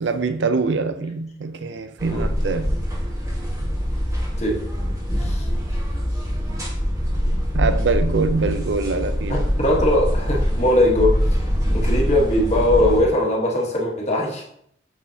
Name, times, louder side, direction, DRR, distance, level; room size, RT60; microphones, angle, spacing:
voice 1, 0.0-2.7 7.5-9.4, right 4 dB, 70° right, 10 dB, 0.5 m, -24 dB
sound 1, 2.0-13.0, equal, 15° right, 1.6 m, -23 dB
voice 2, 9.3-11.2 11.7-14.4, left 1 dB, 35° left, -2 dB, 1.3 m, -20 dB
6.3 x 5.8 x 2.8 m, 0.70 s
head